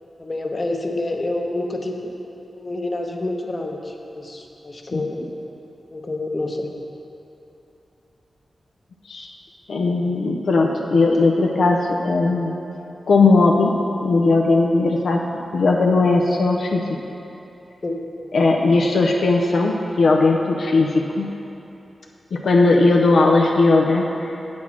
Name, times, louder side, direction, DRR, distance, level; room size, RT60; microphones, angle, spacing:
voice 1, 0.2-2.1 2.5-5.3 5.9-6.7 17.8-18.0, left 2 dB, 40° left, 2 dB, 0.9 m, -28 dB
voice 2, 9.7-12.5 13.1-13.7 14.0-15.2 15.5-17.0 18.3-21.3 22.3-24.4, left 3 dB, 80° left, 0 dB, 0.5 m, -18 dB
7.5 x 6.1 x 5.9 m, 3.0 s
cardioid pair, 55°, 0 cm